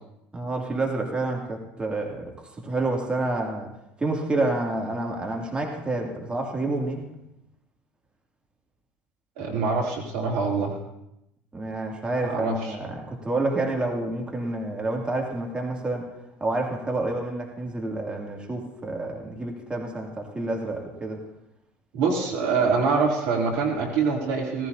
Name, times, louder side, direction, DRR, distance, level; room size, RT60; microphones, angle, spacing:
voice 1, 0.3-7.1 11.5-16.1 16.4-21.2, right 2 dB, 15° right, 0 dB, 2.8 m, -29 dB
voice 2, 9.4-10.7 12.3-12.5 21.9-24.7, right 4 dB, 65° right, -1 dB, 3.1 m, -24 dB
17.5 x 15.5 x 2.9 m, 0.83 s
hypercardioid pair, 65°, 6 cm